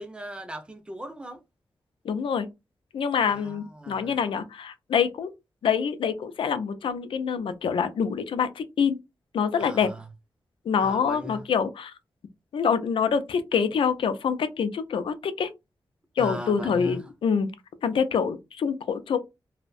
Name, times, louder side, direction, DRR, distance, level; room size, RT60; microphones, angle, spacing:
voice 1, 0.0-1.4 3.3-4.2 9.6-10.1 10.8-11.4 16.2-17.1, equal, 10° right, 0.4 m, -38 dB
voice 2, 2.0-2.5 2.9-5.3 5.6-9.0 9.3-9.9 10.7-11.9 12.5-15.5 16.2-17.5 17.8-19.2, left 6 dB, 85° left, 0.4 m, -26 dB
2.5 x 2.1 x 2.4 m
wide cardioid pair, 175°, 9 cm